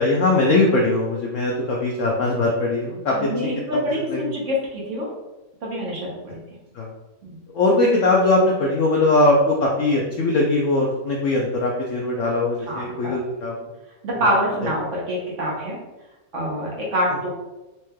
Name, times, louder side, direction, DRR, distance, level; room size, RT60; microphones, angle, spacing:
voice 1, 0.0-3.3 4.1-4.2 6.7-6.9 7.5-13.5 14.1-14.2 14.6-14.7, left 2 dB, 70° left, -2 dB, 0.7 m, -20 dB
voice 2, 3.1-5.1 5.6-6.4 7.2-7.4 12.7-13.1 14.0-15.8 16.3-17.3, equal, 55° right, -4 dB, 1.0 m, -25 dB
4.4 x 3.1 x 2.2 m, 1.1 s
omnidirectional pair, 1.8 m